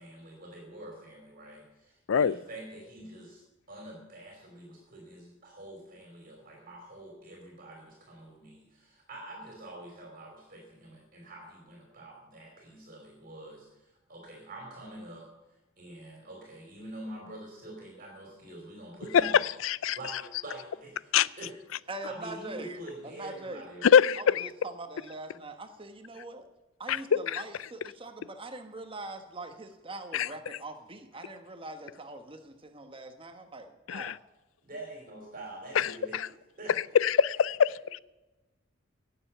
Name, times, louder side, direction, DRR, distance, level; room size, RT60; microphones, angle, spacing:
voice 1, 0.0-15.3 15.8-19.5 19.9-21.5 21.8-23.9 34.6-36.7, right 1 dB, 45° right, 3.0 m, -46 dB
voice 2, 19.1-20.0 21.1-21.3 23.8-24.5 26.9-27.4 30.1-30.3 33.9-34.1 35.8-36.3 36.9-38.0, left 7 dB, 85° left, 0.4 m, -24 dB
voice 3, 21.9-22.8 23.0-23.6 24.2-26.5 26.8-34.2, right 2 dB, 25° right, 1.2 m, -42 dB
18.0 x 7.0 x 6.8 m
head